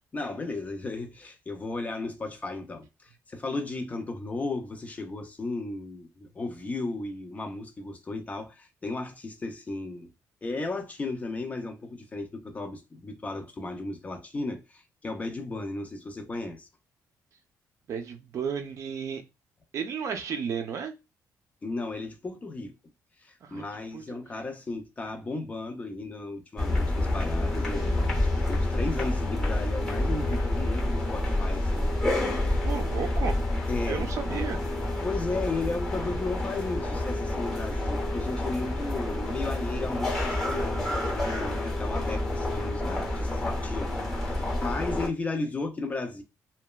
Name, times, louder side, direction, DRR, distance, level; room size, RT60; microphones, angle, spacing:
voice 1, 0.1-10.1 10.4-16.7 21.6-22.7 23.2-32.6 33.7-34.1 35.0-46.2, left 3 dB, 25° left, 0.5 m, -35 dB
voice 2, 17.9-19.2 19.7-20.9 23.4-24.0 32.6-33.4 33.9-34.6, right 6 dB, 55° right, 0.6 m, -33 dB
sound 1, 26.6-45.1, left 1 dB, 5° left, 0.9 m, -28 dB
2.9 x 2.1 x 2.2 m
cardioid pair, 145°, 6 cm